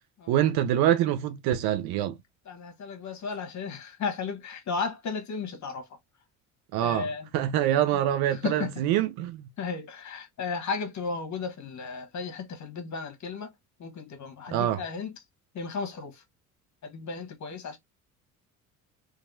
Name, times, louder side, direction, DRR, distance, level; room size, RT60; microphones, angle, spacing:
voice 1, 0.3-2.2 6.7-7.1 7.3-9.4 14.5-14.8, right 11 dB, 65° right, 0.7 m, -25 dB
voice 2, 2.5-5.9 6.8-7.3 8.3-8.7 9.6-13.5 13.8-15.1 15.5-16.2 16.8-17.8, left 5 dB, 40° left, 1.2 m, -34 dB
2.8 x 2.6 x 2.5 m
hypercardioid pair, 65°, 42 cm